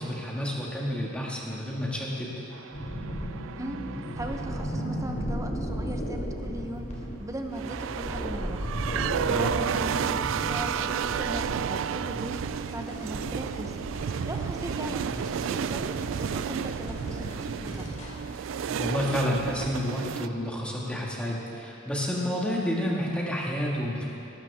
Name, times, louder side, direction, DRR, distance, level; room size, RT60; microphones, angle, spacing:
voice 1, 0.0-2.3 9.2-9.5 18.8-24.1, equal, 5° left, -4 dB, 2.0 m, -30 dB
sound 1, 2.5-4.8 7.5-20.3, right 8 dB, 75° right, 0.3 m, -32 dB
sound 2, 2.7-19.7, equal, 40° left, 3.1 m, -36 dB
voice 2, 4.1-8.8 9.3-18.1, right 1 dB, 15° right, 4 dB, 0.9 m, -39 dB
19.5 x 13.0 x 3.6 m, 3.0 s
head